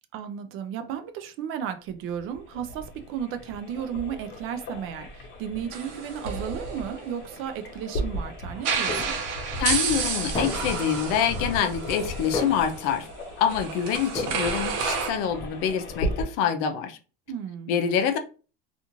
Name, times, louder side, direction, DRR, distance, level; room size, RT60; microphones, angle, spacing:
voice 1, 0.1-9.2 17.3-17.7, right 8 dB, 45° right, 0.4 m, -34 dB
sound 1, 1.9-16.2, equal, 40° left, 1.0 m, -36 dB
sound 2, 5.7-7.8 8.6-15.1, right 5 dB, 70° right, 0.8 m, -31 dB
sound 3, 8.9-9.5 10.3-11.0 12.3-13.0 14.1-14.8, left 2 dB, 15° left, 0.6 m, -33 dB
voice 2, 9.6-13.1 13.4-17.0 17.7-18.2, left 8 dB, 65° left, 0.6 m, -26 dB
2.5 x 2.4 x 2.9 m
cardioid pair, 140°, 29 cm